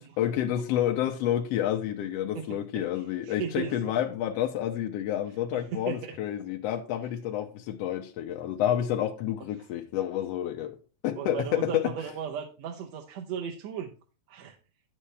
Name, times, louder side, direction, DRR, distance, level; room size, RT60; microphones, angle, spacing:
voice 1, 0.0-10.8 11.0-11.9, left 11 dB, 70° left, 1.6 m, -29 dB
voice 2, 3.2-3.8 5.5-6.1 11.2-13.9 14.3-14.6, right 7 dB, 70° right, 2.0 m, -35 dB
9.9 x 8.5 x 3.3 m
omnidirectional pair, 3.4 m